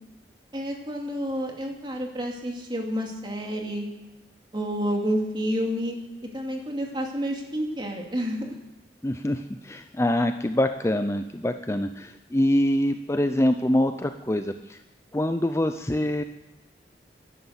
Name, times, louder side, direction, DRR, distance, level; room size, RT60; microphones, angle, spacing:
voice 1, 0.5-3.9 4.5-6.0 6.3-8.6, equal, 25° right, 1 dB, 2.4 m, -29 dB
voice 2, 9.0-14.8 15.1-16.2, left 1 dB, 15° left, 8 dB, 0.5 m, -25 dB
12.5 x 11.5 x 8.0 m, 0.97 s
head